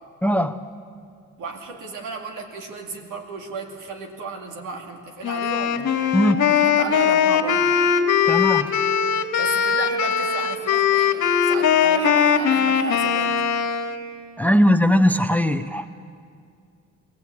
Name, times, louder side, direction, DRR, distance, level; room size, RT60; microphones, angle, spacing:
voice 1, 0.2-0.6 6.1-6.4 8.3-8.7 14.4-16.0, equal, 5° left, 12 dB, 0.6 m, -19 dB
voice 2, 1.4-5.9 6.5-7.7 9.4-13.4, right 3 dB, 85° right, 3 dB, 2.5 m, -34 dB
Wind instrument woodwind instrument, 5.2-14.0, left 7 dB, 75° left, 1.7 m, -20 dB
22.0 x 16.5 x 8.5 m, 2.3 s
cardioid pair, 90°, 30 cm